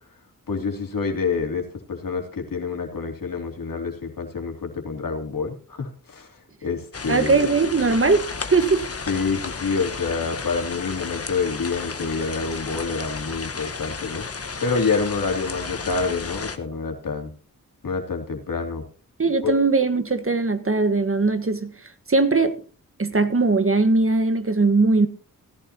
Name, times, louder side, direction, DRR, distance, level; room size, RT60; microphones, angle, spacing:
voice 1, 0.5-6.3 6.6-7.5 9.1-14.3 14.6-17.3 17.8-18.8 19.4-19.6, left 4 dB, 70° left, 3.0 m, -27 dB
sound 1, 6.9-16.6, left 4 dB, 45° left, 1.4 m, -33 dB
voice 2, 7.1-8.2 8.5-8.9 19.2-21.7 22.1-22.6 23.0-25.1, right 3 dB, 40° right, 1.6 m, -20 dB
17.0 x 11.0 x 2.9 m
cardioid pair, 45°, 34 cm